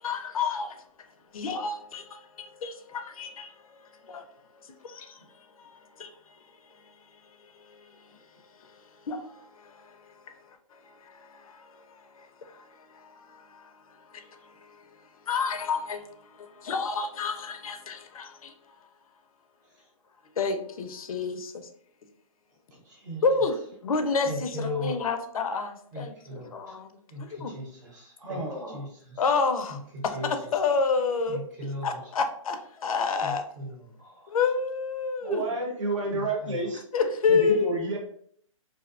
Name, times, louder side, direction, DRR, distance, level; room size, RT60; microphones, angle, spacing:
voice 1, 0.0-0.8 1.3-3.8 4.0-4.2 4.8-5.2 5.6-6.3 7.7-7.9 8.6-8.7 9.1-10.1 10.7-14.8 15.3-18.5 20.4-21.7 23.2-26.9 27.2-27.5 29.2-31.4 31.8-33.4 34.3-35.4 36.9-37.8, left 4 dB, 85° left, 0.4 m, -30 dB
voice 2, 22.7-23.2 24.2-25.0 25.9-26.8 27.1-28.4 28.7-29.2 29.9-30.3 31.3-32.0 33.2-34.3 36.1-36.6, left 1 dB, 30° right, 0.6 m, -38 dB
voice 3, 28.2-28.9 35.2-36.8 37.3-38.0, right 2 dB, 60° right, 0.9 m, -30 dB
2.6 x 2.1 x 2.4 m
hypercardioid pair, 160°, 18 cm